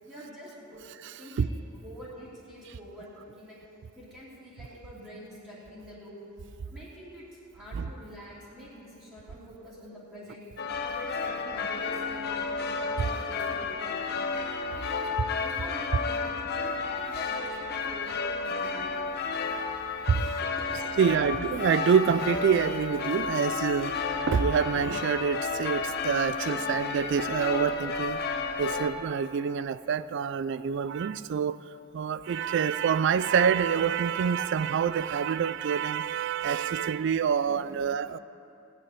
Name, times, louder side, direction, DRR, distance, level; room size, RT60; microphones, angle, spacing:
voice 1, 0.0-0.8 1.2-3.6 3.9-6.2 6.7-7.3 7.5-10.4 10.8-14.4 14.7-15.1 15.4-16.7 17.1-18.8 20.1-21.3 37.5-37.8, equal, 10° right, 3.0 m, -45 dB
sound 1, 10.6-28.9, left 4 dB, 50° left, 0.9 m, -32 dB
voice 2, 21.0-23.9 24.3-28.2 28.6-31.6 32.0-38.2, right 7 dB, 60° right, 0.3 m, -26 dB
17.5 x 5.8 x 9.5 m
head